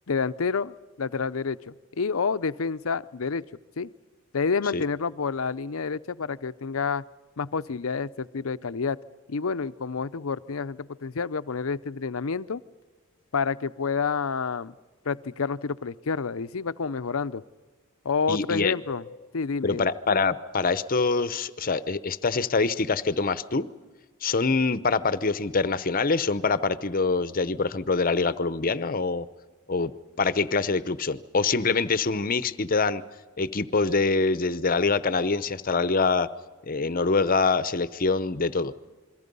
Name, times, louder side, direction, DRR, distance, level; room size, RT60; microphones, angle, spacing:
voice 1, 0.1-3.5 3.8-3.9 4.3-7.0 7.4-9.0 9.3-12.6 13.3-14.7 15.0-17.4 18.0-19.0 19.3-19.9, left 5 dB, 75° left, 14 dB, 0.6 m, -29 dB
voice 2, 18.3-18.8 19.6-23.7 24.2-29.3 29.7-29.9 30.2-33.0 33.4-36.3 36.7-38.7, left 4 dB, 40° left, 14 dB, 0.8 m, -25 dB
28.0 x 22.0 x 5.4 m, 1.3 s
head